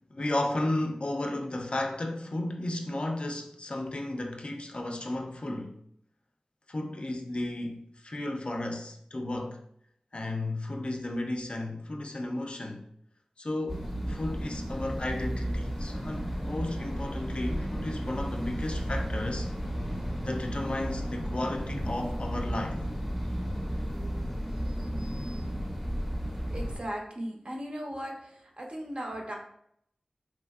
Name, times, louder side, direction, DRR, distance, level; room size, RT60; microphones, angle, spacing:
voice 1, 0.1-5.8 6.7-9.6 10.1-12.9 13.4-19.5 20.2-22.8, left 1 dB, 50° left, 0.3 m, -34 dB
sound 1, 13.7-26.8, equal, 5° right, 0.6 m, -33 dB
voice 2, 26.5-28.1 28.6-29.4, equal, 45° right, 0.6 m, -36 dB
2.9 x 2.5 x 2.3 m
wide cardioid pair, 65°, 2 cm